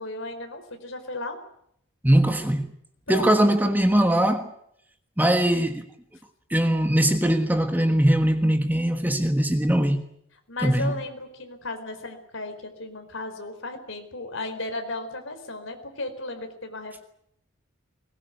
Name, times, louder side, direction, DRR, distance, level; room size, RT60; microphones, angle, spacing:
voice 1, 0.0-1.4 3.1-3.4 10.5-17.0, left 2 dB, 65° left, 4.4 m, -35 dB
voice 2, 2.0-2.7 3.1-4.5 5.2-5.9 6.5-10.0 10.6-10.9, right 1 dB, 10° right, 1.4 m, -21 dB
21.0 x 19.5 x 9.4 m
head